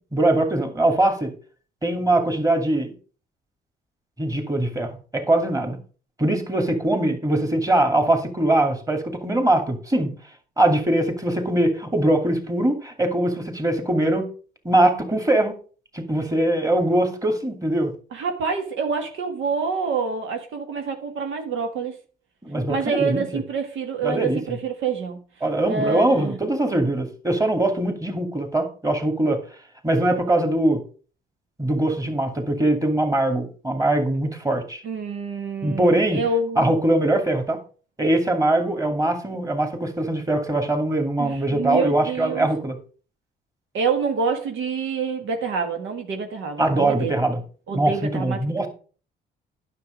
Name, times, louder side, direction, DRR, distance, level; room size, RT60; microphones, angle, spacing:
voice 1, 0.1-1.3 1.8-2.9 4.2-5.8 6.2-10.1 10.6-14.3 14.6-15.5 15.9-17.9 22.4-23.3 24.0-24.4 25.4-29.4 29.8-30.8 31.6-34.8 35.6-36.2 36.6-37.6 38.0-42.7 46.6-47.4 47.7-48.7, right 1 dB, 15° right, 5 dB, 2.5 m, -22 dB
voice 2, 18.1-22.0 22.7-25.2 25.7-26.4 34.8-36.7 41.2-42.5 43.7-47.2 47.7-48.7, right 5 dB, 75° right, 4 dB, 1.7 m, -27 dB
9.6 x 6.9 x 5.1 m, 0.39 s
cardioid pair, 90°, 20 cm